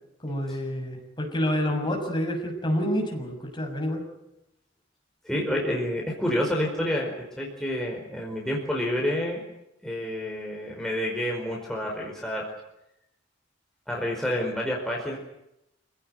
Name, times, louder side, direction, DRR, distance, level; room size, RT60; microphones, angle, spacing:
voice 1, 0.2-4.0, equal, 25° left, 2 dB, 6.6 m, -28 dB
voice 2, 5.2-9.4 9.8-12.5 13.9-15.2, left 1 dB, 5° left, -2 dB, 4.8 m, -28 dB
27.5 x 17.0 x 9.4 m, 0.86 s
head